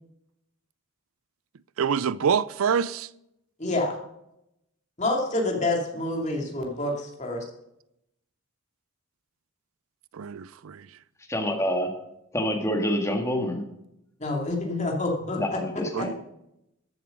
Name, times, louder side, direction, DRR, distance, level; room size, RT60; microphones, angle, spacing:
voice 1, 1.8-3.1 10.1-11.0 15.9-16.1, right 7 dB, 80° right, 0.4 m, -26 dB
voice 2, 3.6-4.0 5.0-7.4 14.2-16.1, left 2 dB, 35° left, 2.5 m, -28 dB
voice 3, 11.3-11.9 12.3-13.7 15.4-16.1, equal, 15° left, 1.7 m, -27 dB
14.0 x 7.8 x 5.3 m
head